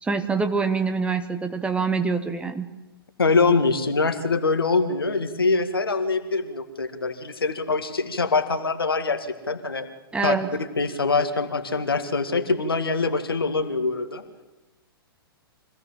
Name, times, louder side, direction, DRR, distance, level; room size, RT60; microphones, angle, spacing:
voice 1, 0.0-2.7 10.1-10.5, right 4 dB, 10° right, 8 dB, 1.2 m, -25 dB
voice 2, 3.2-9.9 10.2-10.3 10.8-14.2, left 4 dB, 70° left, 8 dB, 2.1 m, -24 dB
25.0 x 16.5 x 7.6 m, 1.1 s
figure-of-eight pair, 110°, 12 cm